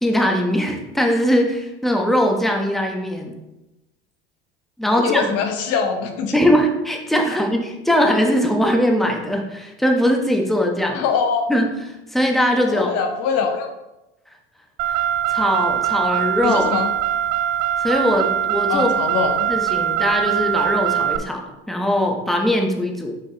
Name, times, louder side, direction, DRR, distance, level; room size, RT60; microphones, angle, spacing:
voice 1, 0.0-3.4 4.8-5.3 6.3-11.0 11.5-11.7 12.1-12.9 14.9-15.0 15.3-16.7 17.8-19.0 19.5-23.1, equal, ahead, 1 dB, 1.0 m, -20 dB
voice 2, 4.9-6.3 10.9-11.5 12.7-13.7 16.4-16.9 18.7-19.5, left 6 dB, 55° left, 5 dB, 0.9 m, -23 dB
Car, 14.8-21.2, right 10 dB, 55° right, 0.5 m, -22 dB
6.0 x 5.2 x 3.0 m, 0.95 s
hypercardioid pair, 85°, 29 cm